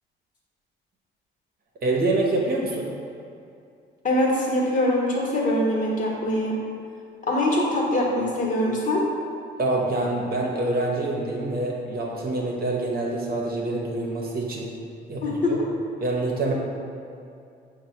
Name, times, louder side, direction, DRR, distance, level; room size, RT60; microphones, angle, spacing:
voice 1, 1.8-2.9 9.6-14.7 15.1-15.6 16.0-16.5, right 2 dB, 50° right, -2 dB, 0.9 m, -26 dB
voice 2, 4.0-6.6 7.3-9.0 15.2-15.5, left 1 dB, 40° left, -3 dB, 1.1 m, -23 dB
5.3 x 2.2 x 4.4 m, 2.4 s
cardioid pair, 90°, 20 cm